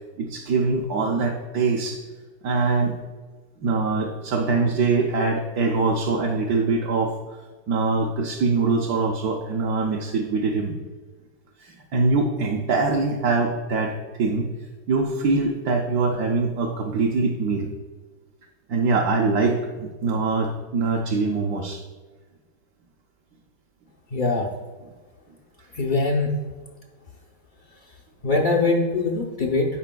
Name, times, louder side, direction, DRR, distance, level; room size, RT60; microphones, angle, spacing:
voice 1, 0.2-2.0 2.4-2.9 3.6-7.1 7.7-10.8 11.6-13.9 14.2-14.5 14.9-17.7 18.7-21.8, right 3 dB, 70° right, 1 dB, 1.1 m, -23 dB
voice 2, 24.1-24.5 25.7-26.3 28.2-29.7, left 3 dB, 75° left, -1 dB, 0.4 m, -22 dB
11.5 x 5.0 x 2.2 m, 1.4 s
omnidirectional pair, 1.9 m